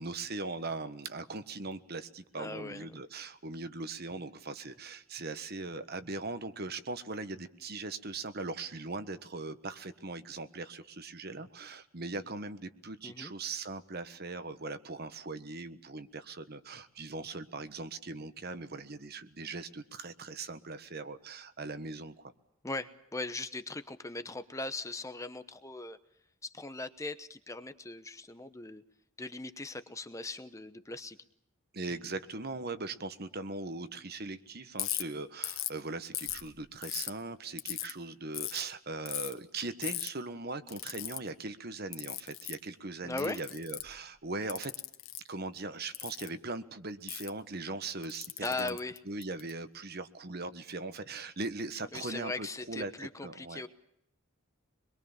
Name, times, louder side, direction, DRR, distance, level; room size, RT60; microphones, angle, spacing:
voice 1, 0.0-22.3 31.7-44.7 45.3-48.8 49.1-52.9 53.2-53.6, right 3 dB, 50° right, 11 dB, 1.3 m, -40 dB
voice 2, 2.4-2.9 13.0-13.3 22.6-26.0 26.4-28.8 29.2-31.2 43.0-43.4 48.4-49.0 51.9-53.7, left 2 dB, 15° left, 10 dB, 1.0 m, -39 dB
Ratchet pawl, 34.8-35.0 35.4-35.7 36.1-37.1 37.6-37.9 38.3-38.6 39.0-39.3 39.8-40.1 40.7-41.2 41.9-42.6 43.2-43.9 44.5-45.2 45.9-46.3 47.1-47.3 48.0-49.5, left 15 dB, 70° left, 1.7 m, -37 dB
25.0 x 22.0 x 7.3 m, 0.76 s
head